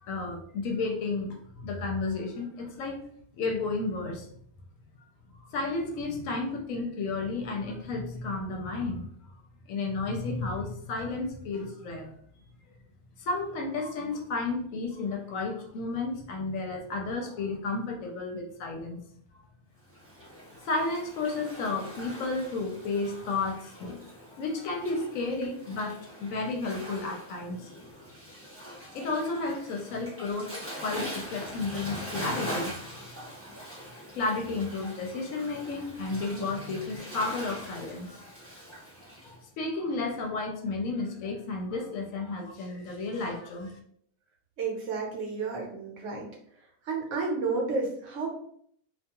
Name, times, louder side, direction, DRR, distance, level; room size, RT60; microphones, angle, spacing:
voice 1, 0.0-3.0 3.4-4.3 5.5-9.1 9.7-12.1 13.2-19.0 20.7-24.1 24.3-27.7 28.9-33.1 33.8-38.3 39.2-43.8, left 3 dB, 70° left, 2 dB, 0.9 m, -32 dB
Waves surf, 19.9-39.3, equal, 10° right, 0.8 m, -42 dB
voice 2, 44.6-46.3 46.8-48.3, right 4 dB, 65° right, -1 dB, 0.9 m, -31 dB
2.4 x 2.3 x 2.8 m, 0.65 s
omnidirectional pair, 1.5 m